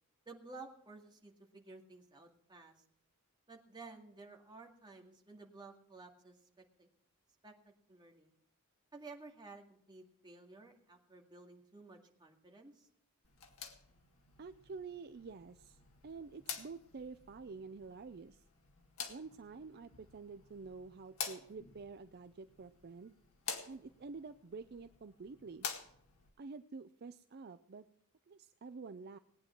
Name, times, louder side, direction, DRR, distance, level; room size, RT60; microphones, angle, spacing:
voice 1, 0.3-2.7 3.5-6.9 7.4-7.5 7.9-8.3 8.9-12.9, right 3 dB, 20° right, 1 dB, 2.1 m, -54 dB
sound 1, 13.2-26.3, left 7 dB, 65° left, 1.9 m, -49 dB
voice 2, 14.4-18.4 19.1-23.1 23.7-25.7 26.4-27.9 28.3-29.2, right 4 dB, 45° right, 10 dB, 0.5 m, -49 dB
19.0 x 9.5 x 4.4 m, 0.72 s
head